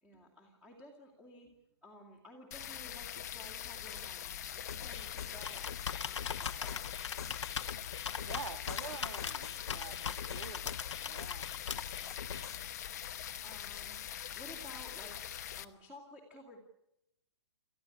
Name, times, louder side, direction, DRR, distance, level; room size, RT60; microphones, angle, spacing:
voice 1, 0.0-1.6 1.8-5.7 6.0-7.0 13.4-14.0 14.3-15.2 15.6-16.6, left 1 dB, 5° right, -1 dB, 2.4 m, -54 dB
sound 1, 2.5-15.6, left 10 dB, 35° left, 1.0 m, -43 dB
sound 2, 4.7-12.7, left 7 dB, 65° left, 1.7 m, -46 dB
Computer keyboard, 4.8-12.1, left 7 dB, 85° left, 1.2 m, -41 dB
voice 2, 8.2-10.7 11.0-11.5, right 6 dB, 70° right, 8 dB, 2.0 m, -47 dB
29.0 x 14.5 x 9.9 m, 0.85 s
hypercardioid pair, 175°, 15 cm